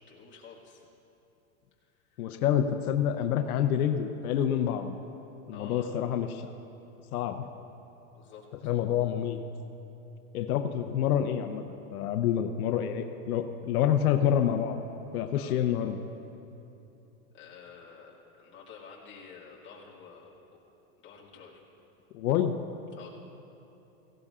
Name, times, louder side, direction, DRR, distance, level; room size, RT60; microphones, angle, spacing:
voice 1, 0.1-0.8 1.8-2.4 5.5-5.9 7.4-7.5 8.1-8.7 15.3-15.6 17.3-20.4 21.0-21.6 23.0-23.1, left 6 dB, 25° left, -5 dB, 2.2 m, -50 dB
voice 2, 2.2-5.0 5.5-6.5 7.1-7.5 8.6-9.4 10.3-14.8 15.1-16.0 22.1-22.6, left 9 dB, 85° left, 6 dB, 0.8 m, -27 dB
17.5 x 16.5 x 2.5 m, 3.0 s
supercardioid pair, 145°, 43 cm